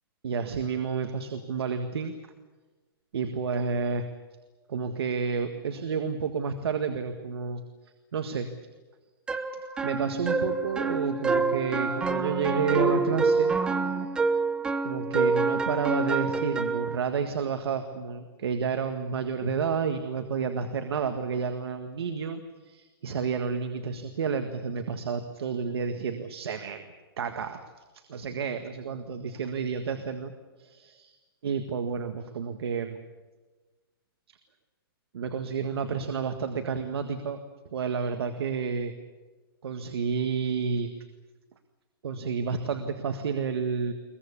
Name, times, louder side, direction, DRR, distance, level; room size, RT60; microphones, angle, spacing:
voice 1, 0.2-2.2 3.1-4.0 4.7-7.6 8.1-8.5 9.8-13.5 14.8-26.8 27.2-27.6 27.9-30.3 30.6-30.9 31.4-33.0 35.1-37.4 37.7-38.9 39.6-40.9 42.0-43.9, right 6 dB, 80° right, 7 dB, 1.8 m, -30 dB
sound 1, 9.3-17.0, right 4 dB, 5° right, 0.8 m, -27 dB
22.0 x 21.0 x 8.5 m, 1.3 s
hypercardioid pair, 170°, 13 cm